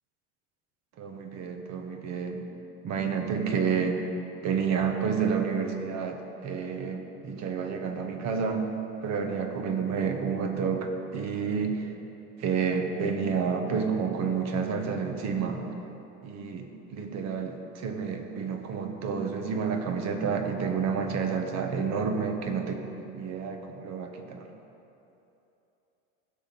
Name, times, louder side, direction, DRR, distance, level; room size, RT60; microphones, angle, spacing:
voice 1, 1.0-2.5 2.8-4.0 4.4-8.7 9.0-11.9 12.4-15.7 16.2-24.5, right 6 dB, 50° right, 5 dB, 1.3 m, -30 dB
16.0 x 5.8 x 4.1 m, 2.9 s
supercardioid pair, 95°, 36 cm